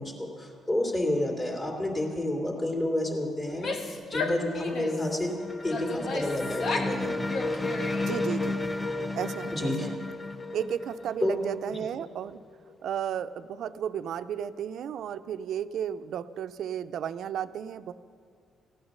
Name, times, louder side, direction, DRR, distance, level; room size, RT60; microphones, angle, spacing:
voice 1, 0.0-5.3 5.6-7.2 9.5-9.9 11.2-11.5, left 1 dB, 35° left, -1 dB, 2.7 m, -30 dB
Female speech woman speaking / Yell, 3.4-5.1 5.7-7.0 7.3-8.3, left 3 dB, 60° left, 1.2 m, -34 dB
sound 1, 4.5-12.1, left 2 dB, 15° left, 0.6 m, -33 dB
voice 2, 8.0-8.6 9.1-9.9 10.5-12.4 12.8-17.9, right 9 dB, 70° right, 12 dB, 0.4 m, -33 dB
15.0 x 8.8 x 6.6 m, 2.3 s
cardioid pair, 90°, 0 cm